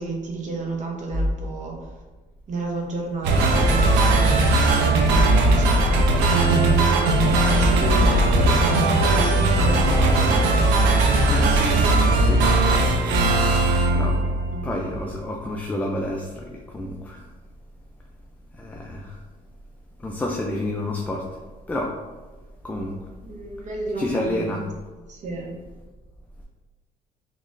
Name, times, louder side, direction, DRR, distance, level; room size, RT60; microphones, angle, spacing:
voice 1, 0.0-1.7 2.5-4.4 4.9-6.4 7.3-10.6 11.7-12.0 14.5-14.6 23.2-24.6 25.1-25.6, right 3 dB, 45° right, -1 dB, 0.9 m, -32 dB
sound 1, 3.2-14.8, right 2 dB, 85° right, 0.5 m, -18 dB
voice 2, 5.2-5.6 7.3-8.0 11.1-12.7 13.9-14.3 14.6-17.2 18.5-19.2 20.0-21.3 21.7-22.0 22.6-23.0 24.0-24.6, left 1 dB, 10° left, 0 dB, 0.3 m, -29 dB
3.8 x 3.0 x 2.5 m, 1.2 s
cardioid pair, 110°, 17 cm